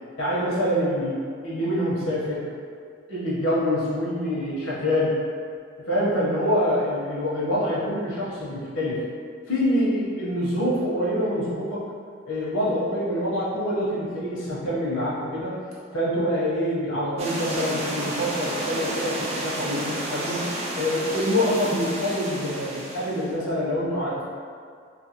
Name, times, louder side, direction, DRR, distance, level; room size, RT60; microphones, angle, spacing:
voice 1, 0.2-2.4 3.1-5.2 5.9-9.0 9.5-11.8 12.2-15.5 15.9-24.3, equal, 85° left, -7 dB, 0.9 m, -26 dB
sound 1, 17.2-23.3, right 1 dB, 30° right, 0.3 m, -31 dB
2.6 x 2.6 x 2.8 m, 2.2 s
head